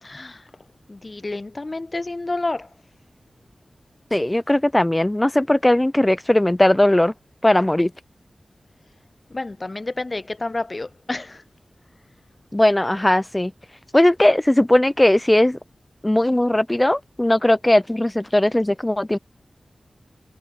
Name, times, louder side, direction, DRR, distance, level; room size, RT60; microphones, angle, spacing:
voice 1, 0.0-0.5 0.9-2.7 9.3-11.4, left 2 dB, 35° left, 2.0 m, -29 dB
voice 2, 4.1-7.1 7.4-7.9 12.5-13.5 13.9-15.6 16.0-19.2, left 1 dB, 15° left, 0.3 m, -18 dB
wide cardioid pair, 80°, 0 cm